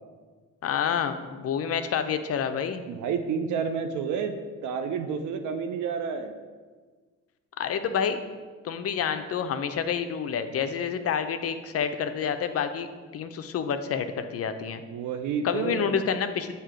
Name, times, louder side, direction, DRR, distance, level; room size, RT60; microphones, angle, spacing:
voice 1, 0.6-2.8 7.6-8.2 8.6-12.9 13.1-14.8 15.4-16.5, left 7 dB, 50° left, 9 dB, 0.5 m, -28 dB
voice 2, 2.9-4.3 4.6-6.4 14.9-16.1, right 6 dB, 75° right, 7 dB, 0.5 m, -30 dB
7.5 x 2.8 x 4.9 m, 1.4 s
cardioid pair, 90°, 30 cm